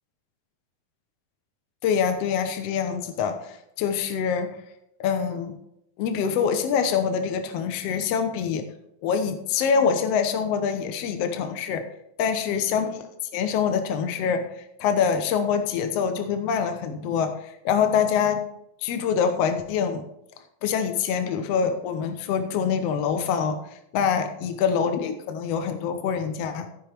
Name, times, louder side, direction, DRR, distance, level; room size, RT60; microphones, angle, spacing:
voice 1, 1.8-4.6 5.0-5.6 6.0-8.6 9.0-11.8 12.2-13.1 13.3-18.4 18.8-20.0 20.6-23.6 23.9-26.7, left 7 dB, 65° left, 7 dB, 1.8 m, -25 dB
15.5 x 5.4 x 4.5 m, 0.80 s
omnidirectional pair, 3.7 m